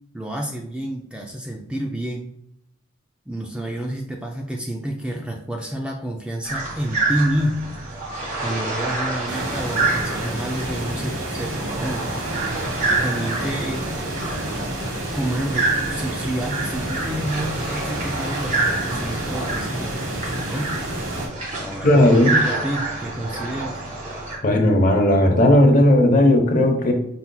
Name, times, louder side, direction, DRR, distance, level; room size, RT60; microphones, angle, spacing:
voice 1, 0.1-2.3 3.3-7.7 8.4-12.1 12.9-13.9 15.1-20.7 21.6-23.8, right 1 dB, 5° right, 1 dB, 0.4 m, -29 dB
sound 1, 6.4-24.4, right 3 dB, 40° right, 1.4 m, -28 dB
sound 2, 9.3-21.3, right 1 dB, 65° right, 1.3 m, -29 dB
voice 2, 21.8-22.4 24.4-26.9, left 1 dB, 40° left, 3 dB, 0.8 m, -15 dB
5.7 x 4.0 x 2.2 m, 0.75 s
head